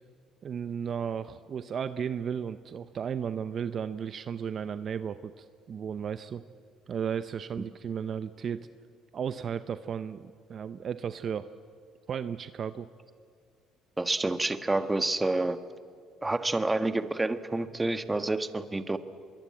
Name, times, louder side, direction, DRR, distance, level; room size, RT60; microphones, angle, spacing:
voice 1, 0.4-6.4 6.9-8.7 9.1-11.5 12.1-12.9, right 7 dB, 50° right, 12 dB, 0.7 m, -34 dB
voice 2, 14.0-15.6 16.2-19.0, right 2 dB, 15° right, 10 dB, 1.4 m, -28 dB
24.5 x 22.5 x 8.7 m, 2.1 s
supercardioid pair, 90°, 0 cm